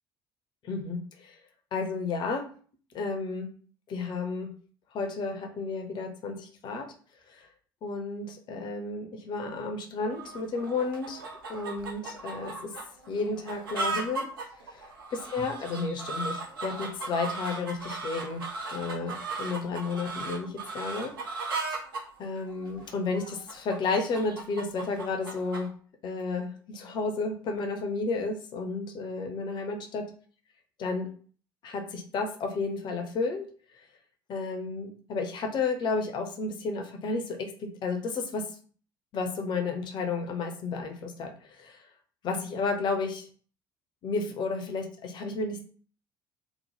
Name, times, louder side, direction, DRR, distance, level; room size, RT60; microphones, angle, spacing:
voice 1, 0.6-1.4 1.7-2.4 2.9-3.5 3.9-4.5 4.9-6.9 7.3-7.5 7.8-11.2 11.5-12.7 13.1-14.2 14.7-18.4 18.7-21.1 22.2-25.7 26.0-30.0 30.8-31.1 31.6-33.4 34.3-38.6 39.1-41.8 42.2-43.3 44.0-45.6, left 4 dB, 40° left, 4 dB, 0.6 m, -32 dB
sound 1, 10.1-25.7, right 3 dB, 75° right, 0.5 m, -37 dB
2.8 x 2.0 x 3.1 m, 0.43 s
figure-of-eight pair, 55°, 12 cm